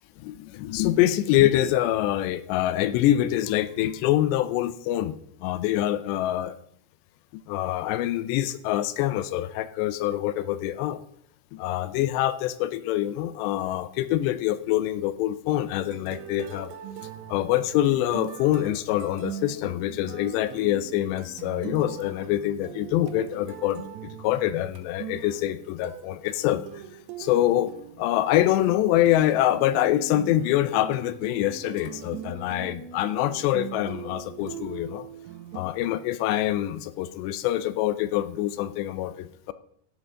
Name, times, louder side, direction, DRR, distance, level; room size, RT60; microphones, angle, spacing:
voice 1, 0.2-5.2 5.4-6.6 7.3-11.0 11.5-16.7 17.3-23.8 24.2-26.6 27.2-27.7 28.0-35.1 35.5-39.5, left 13 dB, 80° left, 13 dB, 2.7 m, -25 dB
sound 1, 15.8-35.6, right 10 dB, 85° right, 3.2 m, -41 dB
13.5 x 11.0 x 3.6 m, 0.69 s
omnidirectional pair, 5.1 m